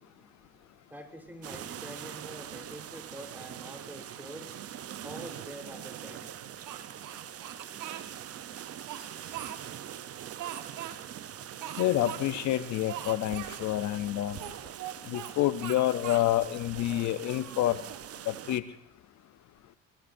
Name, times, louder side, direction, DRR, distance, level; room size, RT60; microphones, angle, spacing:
voice 1, 0.0-4.6 5.0-6.3, equal, 5° right, 3 dB, 3.8 m, -46 dB
sound 1, 1.4-18.6, right 10 dB, 50° right, 0.7 m, -43 dB
Speech, 6.7-8.1 8.6-9.9 10.4-11.0 11.6-12.2 12.5-12.6 12.9-13.6 14.3-15.3 15.6-16.3 16.8-18.2, right 11 dB, 70° right, 1.4 m, -41 dB
voice 2, 11.8-14.4 15.1-17.8 18.3-18.6, left 14 dB, 65° left, 13 dB, 0.6 m, -28 dB
24.0 x 20.5 x 2.6 m, 0.71 s
cardioid pair, 90°, 31 cm